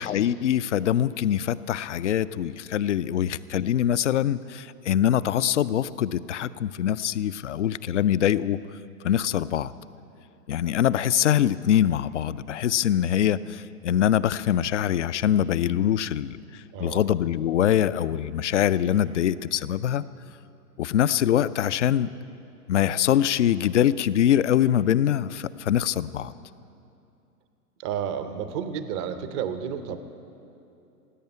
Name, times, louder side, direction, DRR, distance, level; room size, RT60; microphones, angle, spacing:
voice 1, 0.0-8.6 9.0-9.7 10.5-20.0 20.8-22.1 22.7-26.3, left 10 dB, 50° left, 17 dB, 0.5 m, -23 dB
voice 2, 16.7-17.0 27.8-30.0, right 8 dB, 20° right, 10 dB, 0.6 m, -31 dB
16.5 x 8.6 x 9.7 m, 2.7 s
figure-of-eight pair, 120°, 47 cm